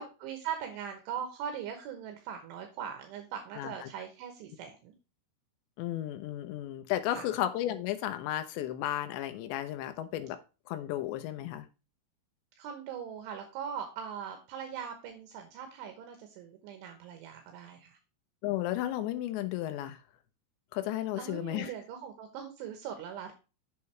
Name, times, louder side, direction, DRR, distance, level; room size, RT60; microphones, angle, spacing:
voice 1, 0.0-4.9 7.1-7.3 12.6-18.0 21.2-23.3, right 8 dB, 75° right, 6 dB, 3.4 m, -40 dB
voice 2, 3.6-3.9 5.8-10.4 10.7-11.7 18.4-20.0 20.7-21.7, left 13 dB, 75° left, 9 dB, 2.9 m, -33 dB
8.4 x 6.8 x 3.2 m, 0.30 s
omnidirectional pair, 5.7 m